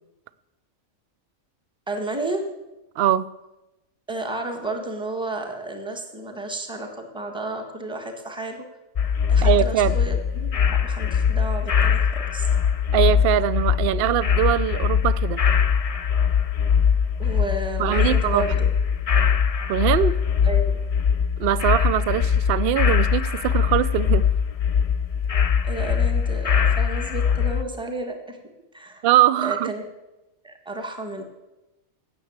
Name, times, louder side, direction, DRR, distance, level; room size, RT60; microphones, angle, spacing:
voice 1, 1.9-2.4 4.1-8.6 9.3-12.0 12.3-12.5 17.2-18.7 20.4-20.8 25.6-28.4 28.7-29.1 29.4-29.9 30.4-31.2, right 2 dB, 5° right, 3 dB, 1.5 m, -32 dB
sound 1, 9.0-27.6, left 7 dB, 50° left, 0.4 m, -21 dB
voice 2, 9.4-10.0 12.9-15.4 17.8-18.5 19.7-20.1 21.4-24.2 29.0-29.7, right 11 dB, 60° right, 17 dB, 0.6 m, -22 dB
17.0 x 6.9 x 8.0 m, 1.0 s
omnidirectional pair, 1.4 m